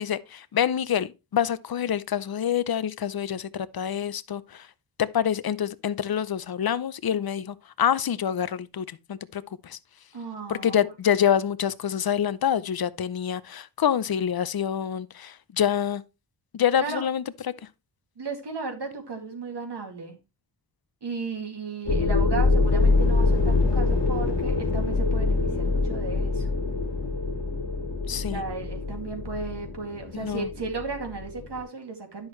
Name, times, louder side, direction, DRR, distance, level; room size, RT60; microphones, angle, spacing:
voice 1, 0.0-4.7 5.0-9.8 10.5-16.0 16.5-17.5 28.1-28.4 30.1-30.5, left 9 dB, 55° left, 0.6 m, -26 dB
voice 2, 10.1-10.8 16.8-17.0 18.2-20.2 21.0-26.5 28.1-32.3, right 4 dB, 65° right, 2.4 m, -35 dB
sound 1, 21.9-31.6, left 3 dB, 70° left, 2.2 m, -25 dB
10.5 x 6.4 x 3.1 m
wide cardioid pair, 85°, 44 cm